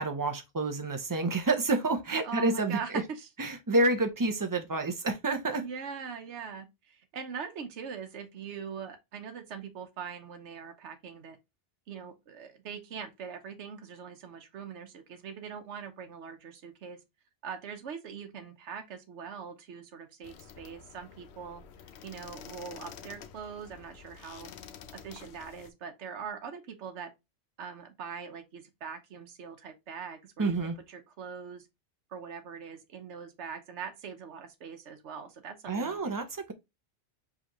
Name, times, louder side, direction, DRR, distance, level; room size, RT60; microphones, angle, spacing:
voice 1, 0.0-3.0 3.4-5.6 30.4-30.8 35.7-36.5, right 2 dB, 20° right, 0.7 m, -29 dB
voice 2, 2.2-3.3 5.6-11.4 11.9-17.0 17.4-21.6 22.0-24.5 24.9-27.1 27.6-31.7 32.1-36.2, right 6 dB, 80° right, 1.1 m, -42 dB
sound 1, 20.2-25.7, left 7 dB, 70° left, 0.9 m, -49 dB
4.9 x 3.3 x 2.9 m
omnidirectional pair, 1.2 m